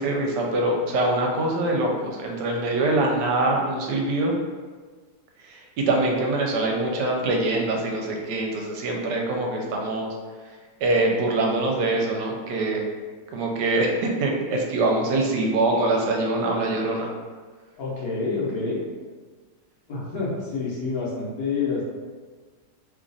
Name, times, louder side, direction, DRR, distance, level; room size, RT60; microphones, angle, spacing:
voice 1, 0.0-4.3 5.4-10.1 10.8-12.8 13.3-17.1, right 2 dB, 75° right, 1 dB, 1.2 m, -24 dB
voice 2, 17.8-18.8 19.9-21.8, left 4 dB, 60° left, -5 dB, 1.2 m, -28 dB
3.1 x 2.4 x 3.9 m, 1.5 s
omnidirectional pair, 2.0 m